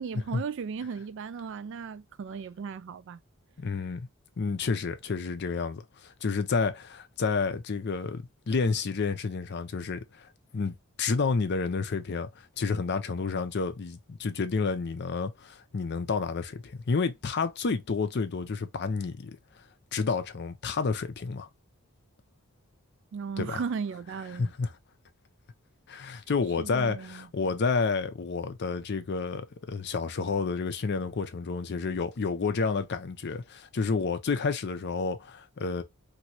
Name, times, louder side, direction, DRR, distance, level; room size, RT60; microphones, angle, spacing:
voice 1, 0.0-3.2 23.1-24.5 26.6-27.3, right 5 dB, 60° right, 0.3 m, -36 dB
voice 2, 3.6-4.1 4.4-10.3 10.5-12.3 12.6-19.3 19.9-21.5 23.4-23.6 24.4-24.7 25.9-35.8, left 4 dB, 50° left, 0.5 m, -30 dB
3.0 x 2.7 x 2.7 m
head